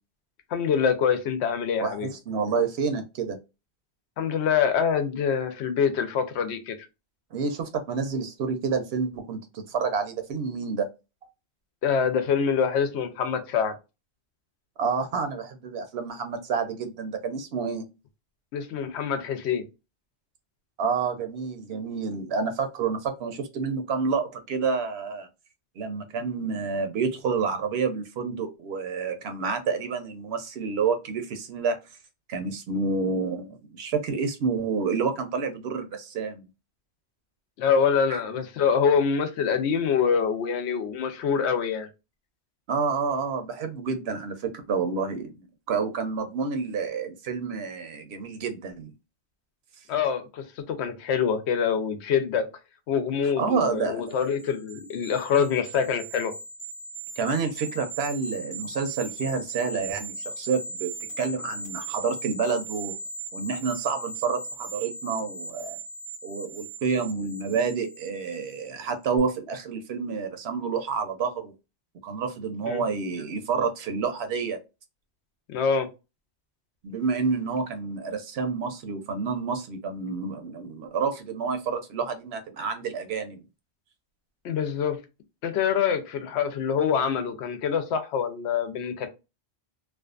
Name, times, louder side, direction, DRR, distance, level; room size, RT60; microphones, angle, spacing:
voice 1, 0.5-2.1 4.2-6.8 11.8-13.7 18.5-19.6 37.6-41.9 49.9-52.5 52.9-56.3 72.7-72.8 75.5-75.9 84.4-85.0 85.4-89.1, left 7 dB, 85° left, 0.9 m, -25 dB
voice 2, 1.8-3.4 7.3-10.9 14.8-17.8 20.8-25.3 25.8-31.8 32.3-36.5 38.1-38.2 42.7-45.4 45.7-48.9 53.2-54.0 57.2-62.9 63.3-65.8 66.2-71.5 72.0-74.6 76.8-83.4, right 5 dB, 75° right, 0.8 m, -29 dB
sound 1, 54.1-68.7 69.0-69.2, right 3 dB, 45° left, 0.8 m, -38 dB
2.4 x 2.3 x 2.3 m
omnidirectional pair, 1.1 m